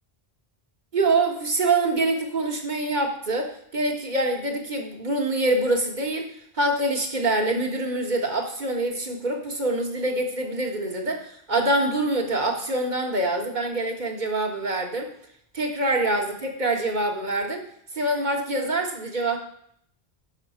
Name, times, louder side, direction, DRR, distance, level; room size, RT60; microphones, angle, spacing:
voice 1, 0.9-15.1 15.5-17.6 17.9-19.4, right 2 dB, 45° right, 2 dB, 1.7 m, -25 dB
12.5 x 5.4 x 5.8 m, 0.67 s
omnidirectional pair, 1.0 m